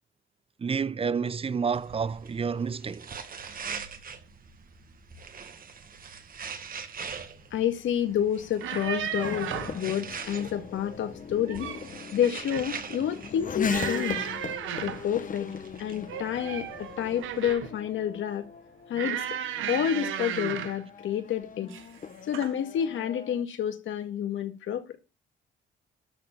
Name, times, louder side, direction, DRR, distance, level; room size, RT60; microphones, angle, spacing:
voice 1, 0.6-3.1, right 6 dB, 30° right, 0.7 m, -29 dB
sound 1, 1.7-17.5, right 6 dB, 45° right, 1.8 m, -44 dB
Race car auto racing / Accelerating revving vroom, 7.2-23.4, left 6 dB, 40° left, 1.4 m, -39 dB
voice 2, 7.5-9.5 9.8-11.8 12.1-14.3 14.8-15.5 15.8-18.5 18.9-19.2 19.7-21.7 22.3-25.0, left 9 dB, 75° left, 2.0 m, -29 dB
sound 2, 8.5-9.8 11.3-11.9 12.2-12.7 13.7-15.1 16.1-17.8 18.9-20.8 21.7-22.0 22.3-22.5, right 10 dB, 85° right, 1.5 m, -35 dB
12.5 x 4.2 x 7.3 m
cardioid pair, 90°, 20 cm